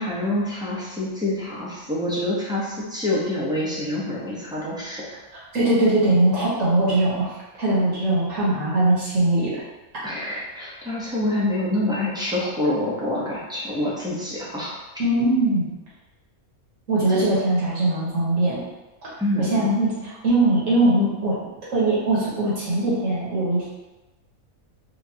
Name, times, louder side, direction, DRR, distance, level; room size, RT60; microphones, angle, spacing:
voice 1, 0.0-5.0 10.0-14.7 17.1-17.3 19.2-19.7, left 1 dB, 5° right, -8 dB, 0.7 m, -26 dB
voice 2, 5.5-9.5 15.0-15.7 16.9-18.6 19.4-21.4 21.7-23.7, right 1 dB, 65° right, -8 dB, 1.7 m, -21 dB
4.6 x 2.6 x 2.8 m, 1.1 s
omnidirectional pair, 1.5 m